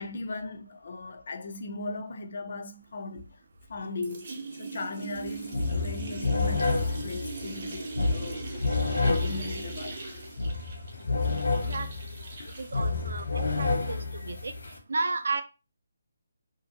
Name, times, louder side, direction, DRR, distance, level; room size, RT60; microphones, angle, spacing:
voice 1, 0.0-3.3 3.7-8.7 9.0-10.2 12.3-12.6, left 3 dB, 50° left, 0.4 m, -38 dB
sound 1, 3.2-3.8 4.0-13.4, right 3 dB, 40° right, 0.7 m, -40 dB
sound 2, 5.1-5.3 5.5-14.8, left 3 dB, 85° left, 0.8 m, -29 dB
voice 2, 12.6-14.0 14.2-14.5 14.9-15.4, right 3 dB, 75° right, 0.4 m, -32 dB
2.6 x 2.5 x 2.7 m
hypercardioid pair, 175°, 0 cm